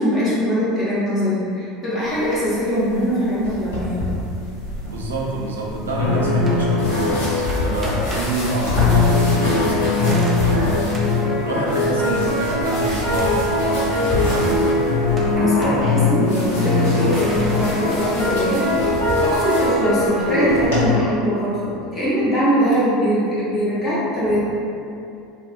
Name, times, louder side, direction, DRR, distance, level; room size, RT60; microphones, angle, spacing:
voice 1, 0.0-4.0 15.0-18.7 19.2-24.4, equal, 35° left, -10 dB, 1.0 m, -22 dB
sound 1, 2.0-20.8, left 1 dB, 70° left, 1.0 m, -29 dB
voice 2, 4.8-11.2 11.4-14.7, right 2 dB, 80° right, -3 dB, 0.4 m, -26 dB
sound 2, 6.0-8.0 8.7-21.0, left 3 dB, 85° left, 0.7 m, -20 dB
sound 3, 6.3-20.8, equal, 20° right, 0.4 m, -39 dB
2.8 x 2.1 x 2.4 m, 2.6 s
hypercardioid pair, 75°, 0 cm